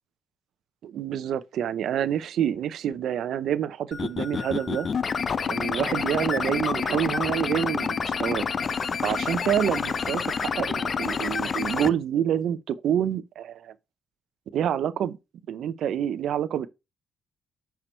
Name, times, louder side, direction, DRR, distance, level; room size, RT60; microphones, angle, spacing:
voice 1, 0.8-4.9 5.5-8.5 9.0-13.7 14.5-15.2 15.5-16.7, right 10 dB, 70° right, 0.6 m, -27 dB
sound 1, 3.9-11.9, left 6 dB, 45° left, 0.5 m, -28 dB
6.0 x 4.7 x 4.4 m
cardioid pair, 90°, 0 cm